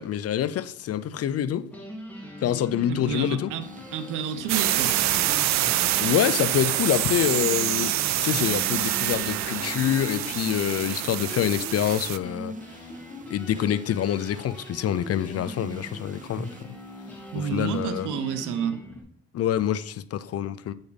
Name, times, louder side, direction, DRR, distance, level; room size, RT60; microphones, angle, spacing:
voice 1, 0.0-1.7 2.4-3.5 6.0-7.9 8.2-12.5 13.3-16.7 17.4-18.1 19.3-20.7, left 10 dB, 55° left, 0.5 m, -26 dB
sound 1, 1.7-19.0, equal, 5° left, 2.0 m, -40 dB
voice 2, 2.9-3.6 3.9-5.0 17.3-18.8, right 7 dB, 85° right, 0.8 m, -29 dB
sound 2, 3.6-17.8, right 4 dB, 25° right, 0.7 m, -46 dB
sound 3, 4.5-12.2, right 14 dB, 65° right, 0.4 m, -26 dB
8.3 x 5.2 x 4.0 m
cardioid pair, 90°, 30 cm